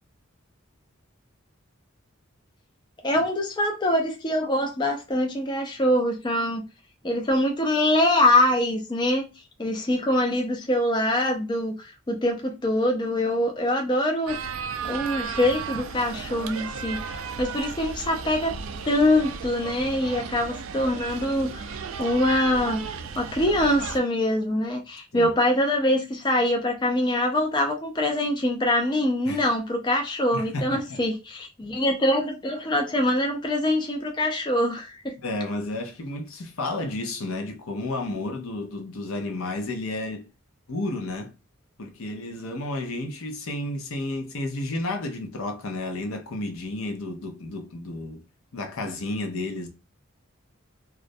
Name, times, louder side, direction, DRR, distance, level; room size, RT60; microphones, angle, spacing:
voice 1, 3.0-6.6 7.0-9.3 9.6-14.5 14.9-18.5 18.8-22.8 23.2-35.2, left 1 dB, 20° left, 0.4 m, -24 dB
sound 1, 14.3-24.0, right 6 dB, 70° right, 0.3 m, -35 dB
voice 2, 30.3-31.0 35.2-40.3 40.7-41.3 41.8-48.2 48.5-49.7, left 2 dB, 75° left, 0.6 m, -32 dB
2.4 x 2.0 x 2.6 m
head